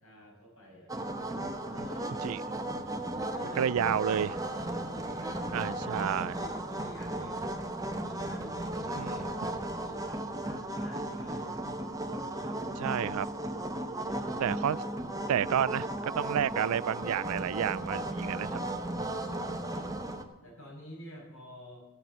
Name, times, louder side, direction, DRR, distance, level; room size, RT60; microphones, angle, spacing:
voice 1, 0.0-0.9 1.6-2.2 3.2-3.8 4.1-5.7 6.3-7.6 8.0-11.6 12.3-12.6 14.0-14.4 18.1-21.9, equal, 70° left, -1 dB, 6.1 m, -50 dB
sound 1, 0.9-20.2, right 1 dB, 15° right, 1.0 m, -35 dB
voice 2, 3.6-4.3 5.5-6.4 9.0-9.2 12.8-13.3 14.4-14.8 15.3-18.5, right 9 dB, 80° right, 21 dB, 0.4 m, -30 dB
15.5 x 7.5 x 8.0 m, 1.0 s
head